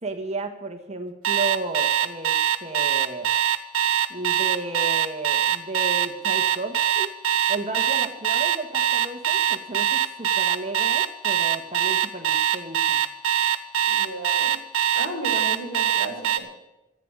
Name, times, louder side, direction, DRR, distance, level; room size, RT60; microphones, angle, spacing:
voice 1, 0.0-3.3 4.1-7.1 7.5-13.0, right 2 dB, 30° right, 5 dB, 1.5 m, -33 dB
Alarm, 1.2-16.4, right 10 dB, 90° right, 1.3 m, -22 dB
voice 2, 13.9-14.6 14.9-16.5, right 1 dB, 60° left, 1 dB, 4.9 m, -34 dB
15.0 x 9.0 x 8.9 m, 0.97 s
head